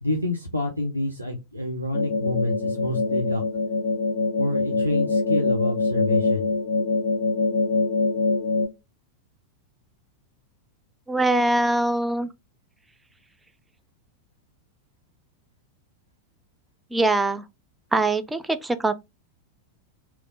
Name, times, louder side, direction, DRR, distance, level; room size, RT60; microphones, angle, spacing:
voice 1, 0.0-3.4 4.4-6.5, left 2 dB, 90° right, 0.5 m, -28 dB
sound 1, 1.9-8.7, left 3 dB, 55° left, 0.4 m, -24 dB
voice 2, 11.1-12.3 16.9-17.4 17.9-18.9, right 2 dB, 10° right, 0.4 m, -22 dB
2.9 x 2.0 x 3.8 m
figure-of-eight pair, 90°, 0 cm